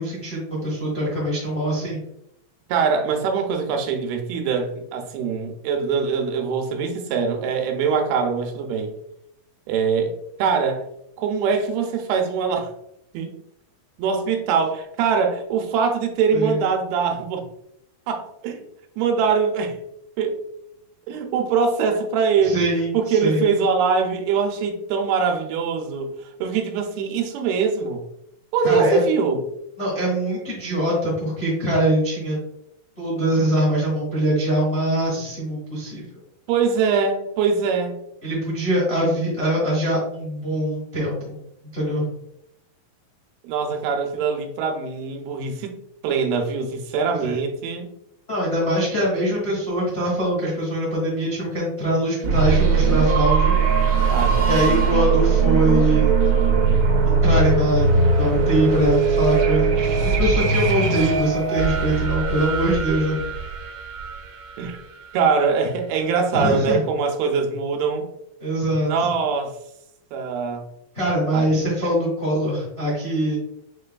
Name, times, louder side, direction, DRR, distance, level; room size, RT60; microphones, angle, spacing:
voice 1, 0.0-2.0 16.3-16.6 22.4-23.4 28.6-29.0 29.8-32.4 33.0-36.0 38.2-41.4 41.7-42.1 47.2-47.4 48.3-53.6 54.4-56.2 57.0-63.2 66.3-66.8 68.4-68.9 70.9-73.4, equal, 80° left, -6 dB, 0.5 m, -23 dB
voice 2, 2.7-8.9 9.7-10.8 11.2-12.7 13.1-13.3 14.0-17.4 18.1-18.6 19.0-19.8 20.2-20.4 21.1-22.7 22.9-28.0 28.5-29.4 36.5-37.9 43.4-47.9 54.1-54.5 64.6-64.8 65.1-68.1 68.9-69.5 70.1-70.6 71.3-71.5, right 5 dB, 90° right, 4 dB, 2.6 m, -23 dB
sound 1, 52.2-64.9, right 5 dB, 75° right, 1.7 m, -20 dB
6.5 x 3.3 x 2.2 m, 0.76 s
omnidirectional pair, 4.3 m